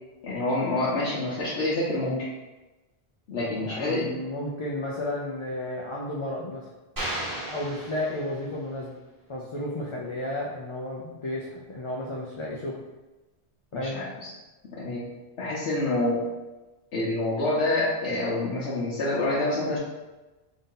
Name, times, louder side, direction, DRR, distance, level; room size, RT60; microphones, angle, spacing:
voice 1, 0.2-2.2 3.3-4.1 13.7-14.0 14.7-15.0 15.4-16.3 16.9-19.8, left 2 dB, 80° left, -8 dB, 1.1 m, -27 dB
voice 2, 3.6-6.7 7.5-8.9 9.3-12.8 13.7-14.0, left 1 dB, 45° left, -4 dB, 0.4 m, -32 dB
sound 1, 7.0-8.7, right 1 dB, 25° right, 0.5 m, -34 dB
3.8 x 2.7 x 3.7 m, 1.1 s
omnidirectional pair, 1.1 m